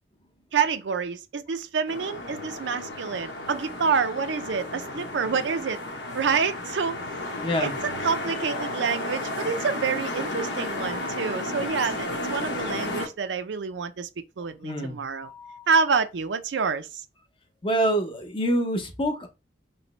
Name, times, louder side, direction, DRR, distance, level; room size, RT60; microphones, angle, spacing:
voice 1, 0.5-5.8 6.1-7.0 7.6-14.1 14.4-15.3 15.7-17.0, right 5 dB, 80° right, 0.5 m, -27 dB
sound 1, 1.9-13.1, left 2 dB, 85° left, 0.9 m, -33 dB
voice 2, 7.4-7.8 14.6-15.7 17.6-19.3, right 1 dB, 30° left, 0.7 m, -27 dB
3.1 x 2.9 x 3.0 m
head